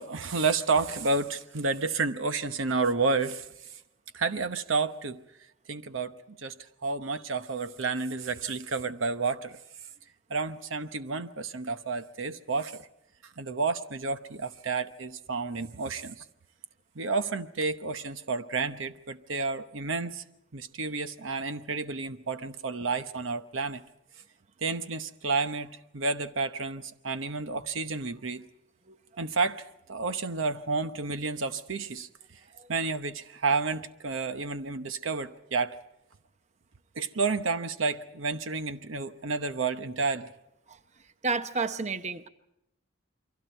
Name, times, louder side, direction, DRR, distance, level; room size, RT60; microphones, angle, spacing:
voice 1, 0.0-3.5 4.1-5.2 5.7-6.6 6.8-9.6 10.3-12.8 13.4-16.2 17.0-20.2 20.5-23.8 24.6-28.5 29.2-32.1 32.7-35.8 37.0-40.3, right 4 dB, 70° right, 0.9 m, -30 dB
voice 2, 41.2-42.3, right 4 dB, 35° right, 0.9 m, -30 dB
29.0 x 23.5 x 4.5 m
head